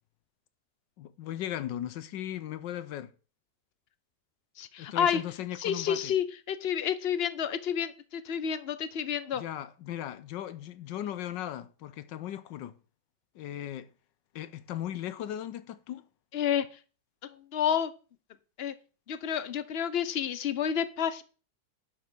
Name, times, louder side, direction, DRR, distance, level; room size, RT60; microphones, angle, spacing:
voice 1, 1.0-3.1 4.8-6.1 9.3-12.7 13.3-13.9 14.3-16.0, left 11 dB, 80° left, 1.4 m, -37 dB
voice 2, 4.6-5.2 5.6-9.4 16.3-16.7 17.2-17.9 18.6-18.7 19.1-21.2, left 8 dB, 50° left, 0.8 m, -30 dB
11.0 x 6.0 x 6.2 m
omnidirectional pair, 1.9 m